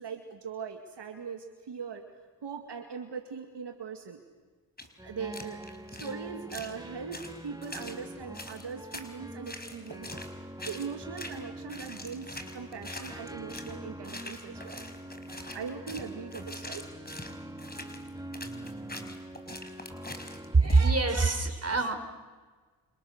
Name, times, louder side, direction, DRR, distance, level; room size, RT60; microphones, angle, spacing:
voice 1, 0.0-2.1 2.4-4.2 5.0-14.9 15.5-16.9, right 6 dB, 70° right, 5 dB, 2.3 m, -40 dB
sound 1, 4.8-4.9 5.3-6.1 6.5-6.7 7.1-8.0 8.3-9.1 9.4-10.3 10.6-10.9 11.2-11.4 11.7-13.7 14.0-21.2, left 2 dB, 20° left, 4.8 m, -43 dB
sound 2, 5.0-20.6, right 1 dB, 10° right, 1.9 m, -44 dB
voice 2, 20.5-22.0, right 3 dB, 35° right, 7 dB, 4.7 m, -23 dB
28.5 x 27.5 x 6.7 m, 1.4 s
cardioid pair, 50°, 43 cm